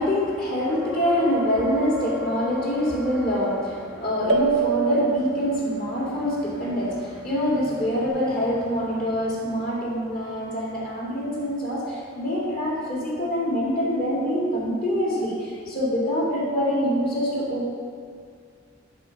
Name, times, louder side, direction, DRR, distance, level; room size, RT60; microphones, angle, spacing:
voice 1, 0.0-17.7, equal, 50° left, -6 dB, 2.2 m, -25 dB
sound 1, 0.6-4.4 8.1-8.2, left 4 dB, 5° right, 0.7 m, -36 dB
sound 2, 4.3-7.3, right 6 dB, 85° right, 0.7 m, -28 dB
11.0 x 3.7 x 5.1 m, 2.1 s
head